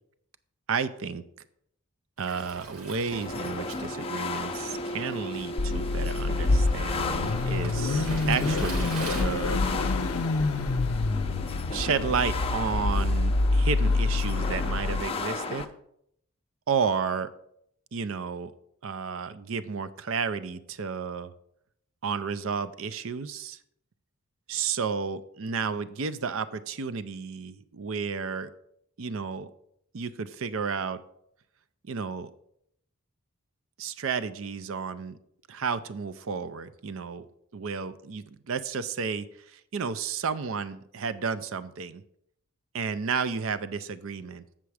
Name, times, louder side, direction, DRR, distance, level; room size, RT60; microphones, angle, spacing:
voice 1, 0.7-1.2 2.2-9.6 11.7-15.7 16.7-17.3 17.9-18.5 18.8-21.3 22.0-23.6 24.5-28.5 29.0-29.5 29.9-31.0 31.8-32.3 33.8-35.2 35.5-37.3 37.5-42.0 42.7-44.4, right 5 dB, 65° right, 14 dB, 0.5 m, -32 dB
Waves surf, 2.2-9.2, right 2 dB, 80° right, 1.5 m, -41 dB
sound 1, 3.1-15.6, left 3 dB, 25° left, 0.5 m, -35 dB
Car / Idling / Accelerating revving vroom, 5.6-15.0, left 3 dB, 75° left, 0.5 m, -26 dB
7.5 x 6.9 x 4.8 m, 0.73 s
head